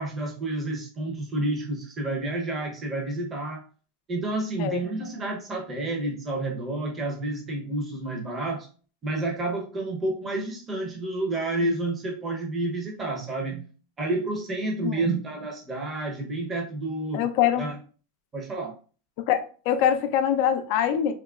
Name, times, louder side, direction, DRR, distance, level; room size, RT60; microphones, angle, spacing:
voice 1, 0.0-3.6 4.1-8.7 9.0-13.7 14.0-17.2 17.6-17.8 18.3-18.7, right 2 dB, 20° right, 0.8 m, -30 dB
voice 2, 17.1-17.7 19.2-19.4 19.7-21.1, left 9 dB, 55° left, 0.4 m, -23 dB
3.5 x 2.9 x 2.4 m
supercardioid pair, 140°, 0 cm